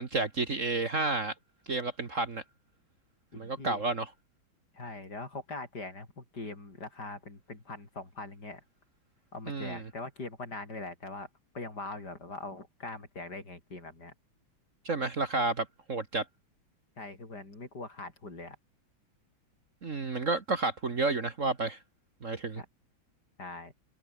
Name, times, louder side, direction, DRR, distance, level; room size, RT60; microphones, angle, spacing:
voice 1, 0.0-1.3 1.7-2.4 3.3-4.1 9.5-9.8 14.9-16.3 19.8-21.8 22.2-22.6, right 3 dB, 40° right, 2.0 m, -31 dB
voice 2, 3.3-3.8 4.7-8.6 9.3-11.3 11.5-14.1 17.0-18.6 22.6-22.7 23.4-23.7, left 2 dB, 50° left, 6.0 m, -42 dB
omnidirectional pair, 2.2 m